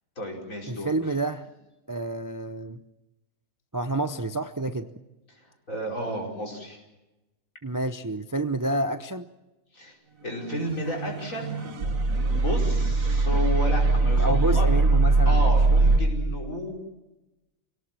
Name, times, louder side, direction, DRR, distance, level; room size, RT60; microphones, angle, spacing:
voice 1, 0.2-1.1 5.4-6.8 9.7-10.0 10.2-11.7 12.1-14.7 15.3-16.7, equal, 55° left, -1 dB, 5.6 m, -32 dB
voice 2, 0.7-1.5 1.9-2.8 3.7-4.9 7.6-9.3 14.0-15.5, right 2 dB, 25° right, 9 dB, 0.4 m, -29 dB
sound 1, 10.7-16.0, right 3 dB, 60° right, 1.9 m, -21 dB
27.0 x 18.0 x 7.4 m, 1.0 s
omnidirectional pair, 1.6 m